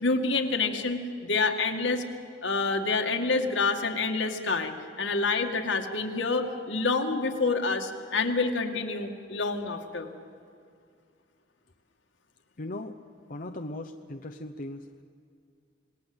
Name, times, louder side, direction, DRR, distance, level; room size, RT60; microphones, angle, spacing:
voice 1, 0.0-2.0 2.4-10.1, left 3 dB, 80° left, 4 dB, 2.2 m, -27 dB
voice 2, 12.6-13.0 13.3-15.0, left 1 dB, 45° left, 4 dB, 0.8 m, -38 dB
27.0 x 19.5 x 8.0 m, 2.4 s
head